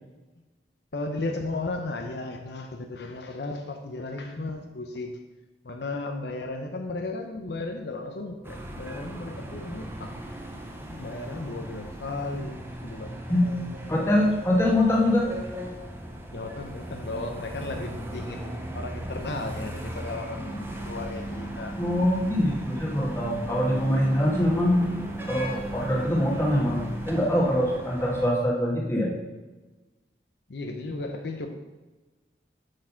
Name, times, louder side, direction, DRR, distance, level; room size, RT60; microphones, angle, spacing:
voice 1, 0.9-5.2 5.6-10.1 10.9-13.6 14.0-14.1 16.3-21.8 30.5-31.5, left 2 dB, 70° left, 4 dB, 0.7 m, -35 dB
sound 1, 8.4-28.3, equal, 15° right, 0.8 m, -39 dB
voice 2, 13.9-15.3 21.8-24.8 25.3-29.1, left 1 dB, 15° left, -4 dB, 1.7 m, -23 dB
sound 2, 20.4-27.2, right 1 dB, 45° left, 1.8 m, -37 dB
6.6 x 6.2 x 5.7 m, 1.2 s
head